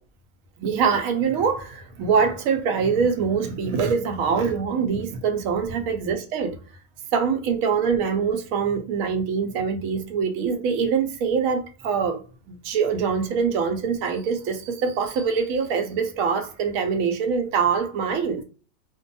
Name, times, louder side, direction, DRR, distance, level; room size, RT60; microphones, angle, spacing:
voice 1, 0.6-6.6 7.1-12.2 12.5-18.4, right 6 dB, 70° right, 0.9 m, -24 dB
2.6 x 2.2 x 2.5 m
omnidirectional pair, 1.7 m